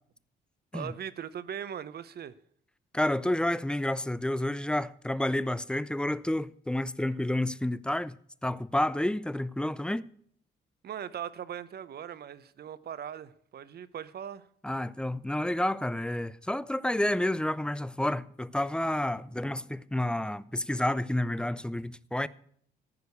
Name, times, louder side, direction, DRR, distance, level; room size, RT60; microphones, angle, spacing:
voice 1, 0.7-2.3 10.8-14.5, right 9 dB, 55° right, 0.7 m, -39 dB
voice 2, 2.9-8.2 8.4-10.0 14.6-22.3, left 1 dB, 5° left, 0.4 m, -30 dB
14.5 x 5.1 x 8.2 m
cardioid pair, 90°, 20 cm